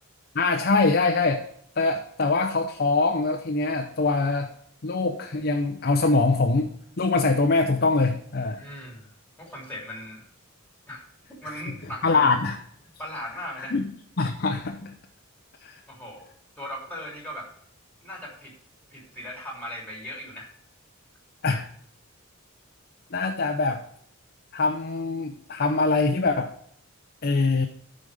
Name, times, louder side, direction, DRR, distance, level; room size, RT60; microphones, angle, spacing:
voice 1, 0.3-1.4 1.8-4.5 4.8-6.7 7.0-8.6 12.0-12.6 13.6-13.8 14.2-14.9 15.6-15.7 21.4-21.7 23.1-23.8 24.5-26.5 27.2-27.7, left 3 dB, 50° left, 3 dB, 0.7 m, -23 dB
voice 2, 8.6-10.3 10.9-11.0 11.4-12.3 13.0-13.8 15.9-16.3 16.5-17.5 18.0-18.5 18.9-20.5, equal, 10° left, -1 dB, 3.1 m, -38 dB
13.5 x 5.3 x 4.9 m, 0.67 s
head